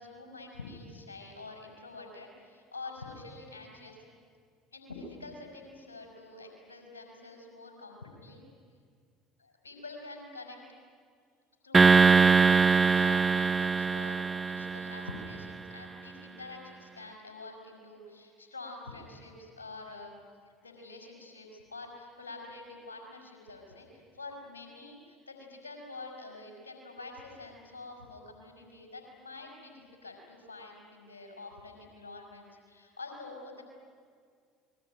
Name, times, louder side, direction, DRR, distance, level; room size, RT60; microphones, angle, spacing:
voice 1, 0.0-4.0 4.7-8.4 9.4-10.6 11.6-20.2 20.6-33.6, left 3 dB, 85° left, 2 dB, 5.3 m, -46 dB
sound 1, 11.7-15.2, right 5 dB, 20° right, 0.8 m, -22 dB
28.5 x 21.5 x 9.2 m, 2.1 s
hypercardioid pair, 65°, 0 cm